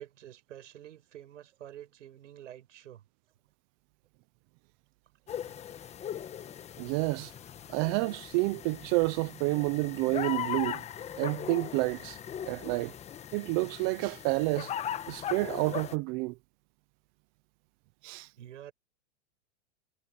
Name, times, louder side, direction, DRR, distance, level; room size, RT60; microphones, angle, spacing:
voice 1, 0.0-3.0 18.4-18.7, right 11 dB, 80° right, 6.9 m, -48 dB
sound 1, 5.3-16.0, left 9 dB, 20° left, 1.2 m, -39 dB
voice 2, 6.8-7.3 7.7-10.8 11.2-12.2 12.4-12.9 13.3-14.7 15.1-16.3 18.0-18.3, right 24 dB, 25° right, 0.3 m, -29 dB
hypercardioid pair, 140°, 36 cm